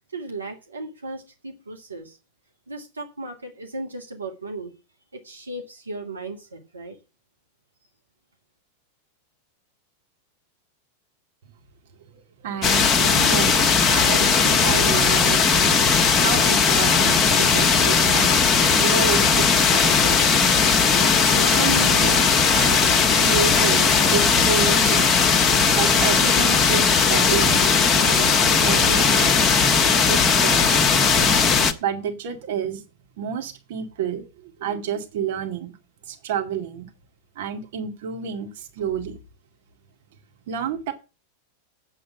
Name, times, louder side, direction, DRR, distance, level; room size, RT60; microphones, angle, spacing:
voice 1, 0.1-2.2 2.7-4.7 5.2-7.0, right 2 dB, 75° right, 1.7 m, -36 dB
voice 2, 12.1-15.7 16.2-18.3 18.8-19.5 19.8-20.6 21.2-25.3 25.7-29.7 30.0-30.8 31.8-32.8 33.2-35.8 36.1-36.9 37.4-39.2 40.5-40.9, right 7 dB, 55° right, 2.1 m, -30 dB
sound 1, 12.6-31.7, left 5 dB, 20° left, 1.2 m, -18 dB
8.4 x 7.5 x 8.8 m
figure-of-eight pair, 90°, 0 cm